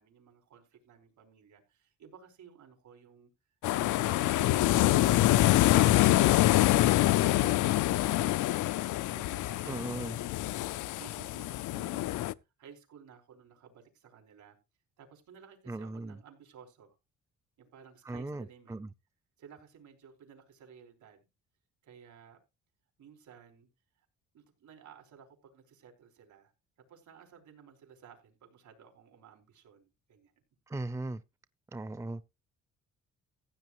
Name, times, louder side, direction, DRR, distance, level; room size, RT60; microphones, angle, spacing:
voice 1, 0.0-3.3 3.7-5.2 5.5-6.5 7.2-8.8 9.1-10.7 10.9-12.3 12.6-14.6 15.0-16.9 17.6-18.8 19.4-21.3 21.8-22.4 23.0-23.7 24.3-26.5 26.9-30.3, right 7 dB, 75° right, 4.8 m, -55 dB
sound 1, 3.6-12.3, left 15 dB, 80° left, 0.6 m, -25 dB
voice 2, 9.7-10.1 15.7-16.2 18.1-18.9 30.7-31.2 31.7-32.3, right 2 dB, 10° right, 0.6 m, -38 dB
15.5 x 8.6 x 3.1 m
cardioid pair, 90°, 30 cm